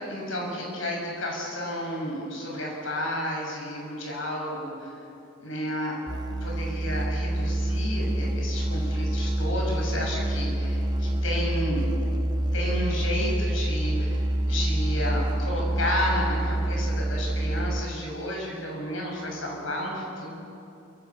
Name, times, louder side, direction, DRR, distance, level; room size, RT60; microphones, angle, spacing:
voice 1, 0.1-5.0 5.4-6.0 6.4-11.8 12.5-20.3, equal, 75° left, -1 dB, 6.7 m, -32 dB
Musical instrument, 6.1-18.1, right 1 dB, 20° right, 0.6 m, -27 dB
27.5 x 15.0 x 7.2 m, 2.6 s
head